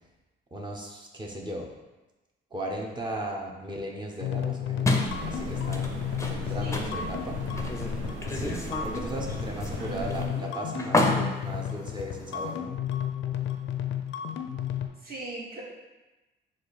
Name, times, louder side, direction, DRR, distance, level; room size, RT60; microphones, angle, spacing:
voice 1, 0.5-1.7 2.5-7.4 8.3-12.7, right 1 dB, 25° right, -1 dB, 0.7 m, -37 dB
sound 1, 4.2-14.9, left 10 dB, 75° left, 0.4 m, -33 dB
sound 2, 4.8-12.6, left 2 dB, 15° left, 0.5 m, -32 dB
sound 3, 5.0-10.3, right 2 dB, 80° right, 0.7 m, -37 dB
voice 2, 6.6-7.0 9.8-10.5 15.0-15.6, right 3 dB, 50° right, -4 dB, 1.4 m, -39 dB
4.9 x 2.3 x 4.1 m, 1.1 s
cardioid pair, 90°, 20 cm